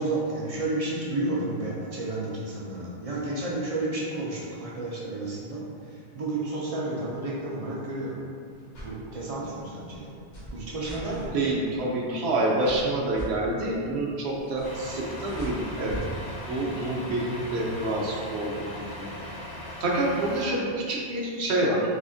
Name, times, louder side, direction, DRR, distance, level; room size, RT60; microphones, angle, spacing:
voice 1, 0.0-8.2 8.7-10.1 10.5-11.4, right 2 dB, 55° right, -5 dB, 0.4 m, -31 dB
sound 1, 8.6-9.0 9.9-11.3 12.2-12.4 12.6-13.3 14.4-14.9 15.1-16.0 16.8-16.9, right 1 dB, 65° left, 1.2 m, -39 dB
voice 2, 11.3-16.0 16.5-19.2 19.8-21.9, right 1 dB, 75° right, -3 dB, 0.9 m, -27 dB
Truck, 14.6-20.5, left 1 dB, 35° left, 0.4 m, -39 dB
3.6 x 2.5 x 2.4 m, 2.3 s
omnidirectional pair, 1.1 m